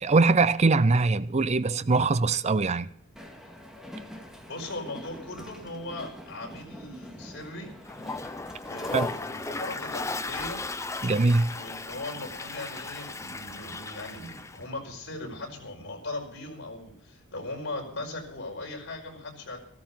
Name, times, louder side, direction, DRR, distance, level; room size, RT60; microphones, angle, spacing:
voice 1, 0.0-2.9 8.9-9.1 11.0-11.5, right 3 dB, 30° right, 0.5 m, -22 dB
Train, 3.2-15.7, equal, ahead, 2.0 m, -47 dB
voice 2, 4.5-7.7 8.6-10.6 11.5-19.6, left 2 dB, 60° left, 5.3 m, -39 dB
Toilet flush, 7.8-14.6, left 3 dB, 15° left, 0.7 m, -36 dB
15.0 x 13.5 x 5.6 m
head